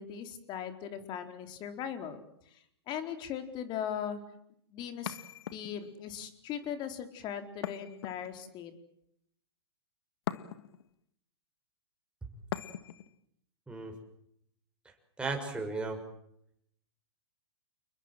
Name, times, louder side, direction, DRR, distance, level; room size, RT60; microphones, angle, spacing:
voice 1, 0.0-2.6 2.9-4.2 4.7-5.2 5.5-8.7, left 8 dB, 35° left, 8 dB, 4.2 m, -39 dB
sound 1, 5.1-6.0 7.6-8.6 10.3-10.9 12.5-13.1, left 11 dB, 65° left, 1.7 m, -40 dB
voice 2, 15.2-16.0, right 3 dB, 5° right, 2 dB, 6.6 m, -35 dB
30.0 x 20.5 x 7.8 m, 0.74 s
hypercardioid pair, 125°, 14 cm